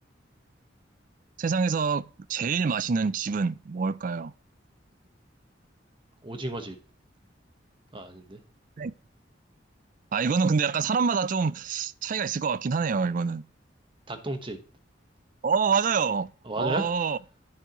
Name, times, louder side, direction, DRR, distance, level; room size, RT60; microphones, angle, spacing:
voice 1, 1.4-4.3 8.8-8.9 10.1-13.4 15.4-16.3 16.6-17.2, right 5 dB, 45° right, 0.4 m, -26 dB
voice 2, 6.2-6.8 7.9-8.4 14.1-14.6 16.4-16.9, right 1 dB, 25° right, 1.2 m, -33 dB
11.0 x 9.6 x 3.0 m
head